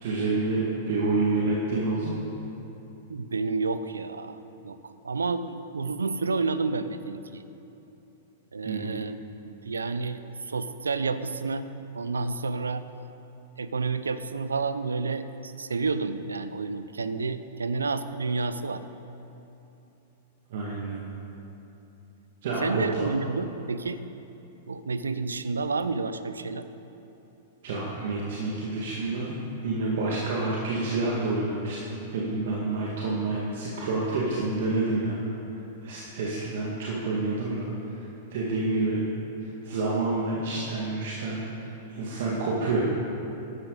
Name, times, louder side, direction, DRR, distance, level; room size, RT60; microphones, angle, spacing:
voice 1, 0.0-2.2 8.6-9.0 20.5-21.0 22.4-23.0 27.6-29.4 29.6-35.2 35.8-37.7 38.3-39.0 39.4-42.8, right 3 dB, 60° right, -5 dB, 2.1 m, -28 dB
voice 2, 3.1-7.4 8.5-9.2 9.6-10.2 10.5-11.7 11.9-12.8 13.6-18.8 22.6-24.0 24.7-26.7, right 4 dB, 80° right, 13 dB, 0.6 m, -30 dB
14.5 x 11.5 x 4.1 m, 3.0 s
figure-of-eight pair, 100°, 0 cm